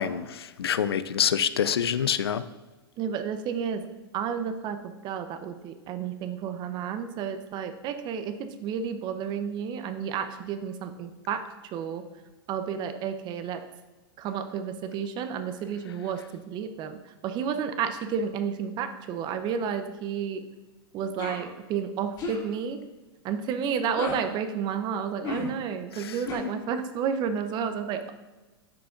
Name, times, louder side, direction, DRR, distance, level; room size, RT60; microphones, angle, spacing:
voice 1, 0.0-2.4 25.9-26.2, left 8 dB, 85° left, 14 dB, 0.4 m, -26 dB
voice 2, 3.0-3.9 4.1-12.0 12.5-13.6 14.2-17.0 17.2-20.4 20.9-22.8 23.2-28.1, right 7 dB, 35° right, 9 dB, 0.7 m, -31 dB
sound 1, 21.2-21.4 22.2-22.4 23.9-24.2 25.2-25.5 26.3-26.4, left 2 dB, 35° left, 2.3 m, -32 dB
9.8 x 5.8 x 2.5 m, 1.2 s
hypercardioid pair, 110°, 13 cm